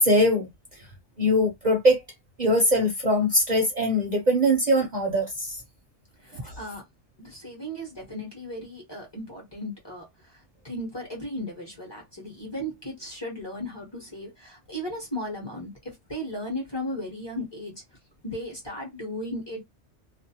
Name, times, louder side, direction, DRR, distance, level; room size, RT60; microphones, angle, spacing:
voice 1, 0.0-0.5 1.2-2.0 2.4-5.6 6.4-6.5, equal, 45° right, 0.7 m, -22 dB
voice 2, 6.2-6.8 7.2-17.8 18.2-19.6, equal, 25° left, 1.0 m, -36 dB
2.5 x 2.0 x 2.8 m
omnidirectional pair, 1.2 m